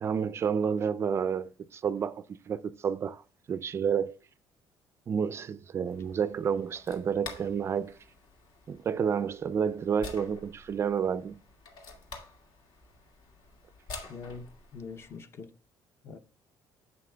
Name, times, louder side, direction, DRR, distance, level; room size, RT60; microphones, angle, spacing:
voice 1, 0.0-3.2 3.5-4.2 5.1-8.0 8.7-11.4, right 7 dB, 35° right, 0.3 m, -30 dB
sound 1, 5.9-15.2, left 3 dB, 70° left, 2.1 m, -48 dB
voice 2, 14.1-15.5 16.0-16.2, left 5 dB, 30° left, 0.7 m, -43 dB
11.0 x 7.7 x 2.2 m
cardioid pair, 150°, 8 cm